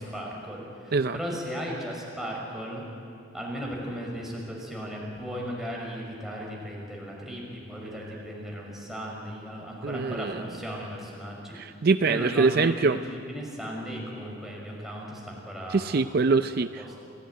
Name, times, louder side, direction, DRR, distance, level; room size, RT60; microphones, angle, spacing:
voice 1, 0.0-2.8 3.3-11.6 12.0-16.0 16.8-16.9, equal, ahead, -3 dB, 6.0 m, -36 dB
voice 2, 9.8-10.4 11.5-13.0 15.7-17.0, right 4 dB, 55° right, 10 dB, 0.5 m, -24 dB
28.5 x 17.0 x 9.3 m, 2.5 s
head